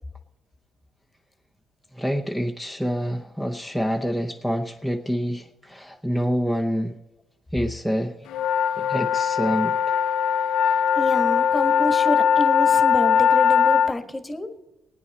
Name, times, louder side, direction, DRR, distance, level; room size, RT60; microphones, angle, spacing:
voice 1, 1.9-7.0 7.5-8.2 8.8-9.9, equal, 5° right, 3 dB, 0.9 m, -27 dB
sound 1, 8.3-13.9, left 7 dB, 85° left, 0.4 m, -20 dB
voice 2, 10.6-14.6, left 1 dB, 15° left, 8 dB, 1.4 m, -28 dB
19.5 x 9.3 x 4.2 m, 0.99 s
cardioid pair, 90°, 0 cm